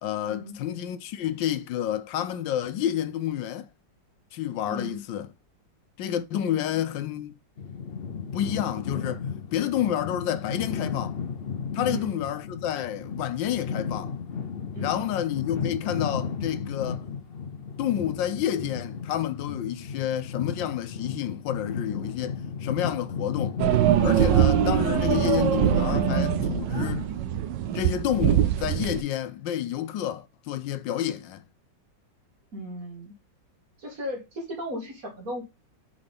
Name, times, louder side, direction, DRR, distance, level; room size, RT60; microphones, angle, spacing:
voice 1, 0.0-3.7 4.3-5.3 6.0-7.3 8.3-9.3 9.5-11.2 11.7-14.2 14.8-17.1 17.8-23.6 24.0-27.0 27.7-31.4, left 11 dB, 80° left, 1.4 m, -29 dB
voice 2, 4.7-5.0 6.4-6.8 11.8-12.1 14.7-15.1 32.5-33.1 33.8-35.4, left 1 dB, 50° right, 2.2 m, -36 dB
sound 1, 7.6-27.0, left 6 dB, 65° left, 0.5 m, -34 dB
sound 2, 23.6-29.0, right 11 dB, 80° right, 1.3 m, -23 dB
4.9 x 3.9 x 5.1 m
omnidirectional pair, 2.0 m